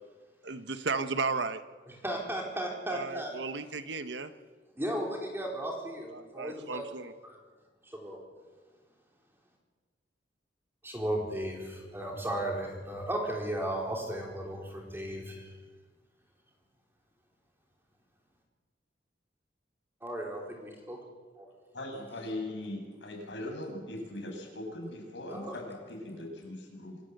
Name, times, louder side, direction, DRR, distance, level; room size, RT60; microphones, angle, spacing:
voice 1, 0.4-1.6 2.9-4.3 6.1-7.1, right 4 dB, 70° right, 11 dB, 1.2 m, -34 dB
voice 2, 1.9-3.4 4.8-6.8 7.2-7.4 7.8-8.2 10.8-15.5 20.0-21.0 21.4-21.5 25.3-25.7, right 1 dB, 10° right, 0 dB, 4.0 m, -35 dB
voice 3, 21.7-27.0, left 1 dB, 80° left, 1 dB, 6.7 m, -40 dB
26.5 x 13.5 x 8.1 m, 1.5 s
head